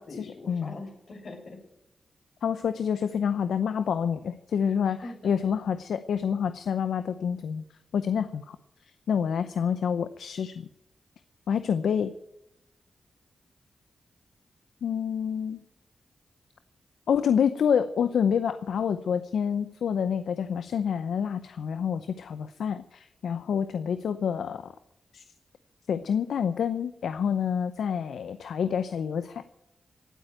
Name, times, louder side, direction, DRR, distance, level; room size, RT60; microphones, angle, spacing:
voice 1, 0.0-1.6 4.9-5.5, left 2 dB, 65° left, 0 dB, 6.8 m, -42 dB
voice 2, 2.4-7.6 7.9-8.6 9.1-10.7 11.5-12.1 14.8-15.6 17.1-24.7 25.1-25.2 25.9-29.4, left 7 dB, 85° left, 12 dB, 0.6 m, -27 dB
17.5 x 9.1 x 9.1 m, 0.83 s
cardioid pair, 60°, 0 cm